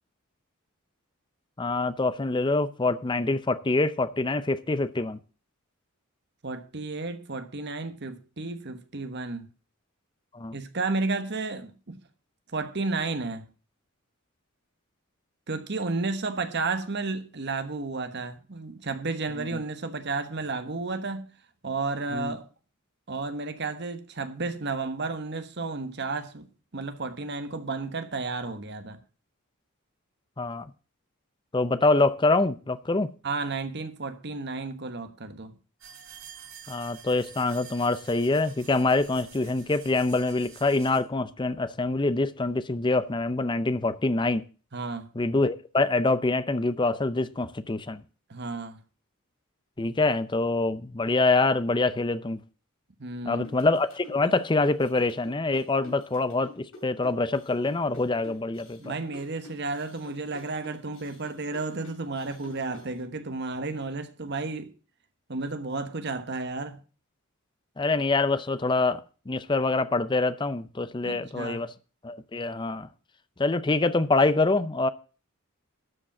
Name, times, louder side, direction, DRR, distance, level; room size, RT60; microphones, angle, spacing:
voice 1, 1.6-5.2 10.3-10.6 19.4-19.6 22.1-22.4 30.4-30.7 31.5-33.1 36.7-44.4 45.2-48.0 49.8-52.4 53.2-58.9 67.8-71.7 72.0-72.9 73.4-74.9, left 3 dB, 20° left, 0.5 m, -25 dB
voice 2, 6.4-9.5 10.5-12.0 12.5-13.5 15.5-21.3 21.6-22.5 23.1-26.5 26.7-29.0 33.2-35.6 44.7-45.1 48.3-48.8 53.0-53.5 58.8-64.7 65.3-66.8 71.0-71.7, right 3 dB, 50° right, 1.2 m, -32 dB
sound 1, 35.8-41.0, right 7 dB, 70° right, 5.2 m, -48 dB
sound 2, 53.4-62.9, left 3 dB, 65° left, 5.0 m, -49 dB
12.5 x 5.1 x 7.3 m
head